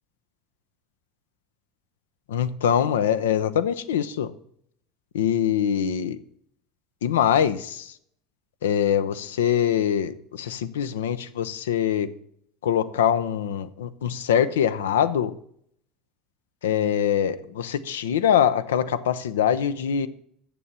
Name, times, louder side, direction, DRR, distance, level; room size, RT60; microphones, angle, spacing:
voice 1, 2.3-4.3 5.1-6.2 7.0-7.9 8.6-12.1 12.6-15.3 16.6-20.1, left 9 dB, 85° left, 13 dB, 0.6 m, -23 dB
7.5 x 6.9 x 6.8 m, 0.67 s
hypercardioid pair, 85°, 0 cm